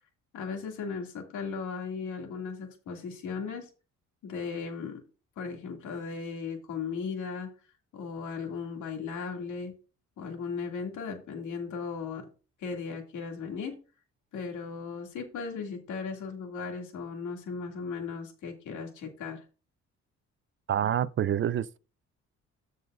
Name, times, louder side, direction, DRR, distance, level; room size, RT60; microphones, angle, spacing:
voice 1, 0.3-3.7 4.2-5.0 5.4-7.5 7.9-9.7 10.2-12.2 12.6-13.8 14.3-19.4, left 5 dB, 80° left, 2.4 m, -37 dB
voice 2, 20.7-21.8, right 10 dB, 40° right, 0.4 m, -27 dB
14.0 x 5.4 x 2.5 m
cardioid pair, 90°, 30 cm